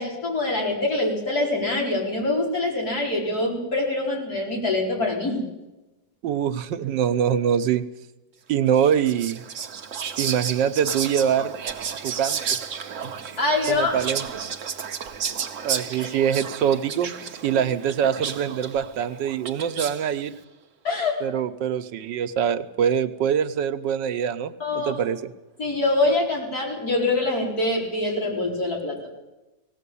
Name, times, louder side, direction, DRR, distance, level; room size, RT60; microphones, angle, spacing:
voice 1, 0.0-5.4 13.4-13.9 16.0-16.1 17.5-17.6 20.8-21.2 24.6-25.0 25.6-29.0, left 2 dB, 55° left, -2 dB, 5.4 m, -24 dB
voice 2, 6.2-7.8 8.5-9.4 10.2-11.5 12.0-12.4 13.7-14.3 15.6-17.1 17.4-20.3 21.2-25.3, right 8 dB, 85° right, 11 dB, 1.5 m, -24 dB
Whispering, 8.8-20.2, right 7 dB, 50° right, 1.2 m, -32 dB
19.0 x 16.5 x 8.5 m, 1.0 s
omnidirectional pair, 1.9 m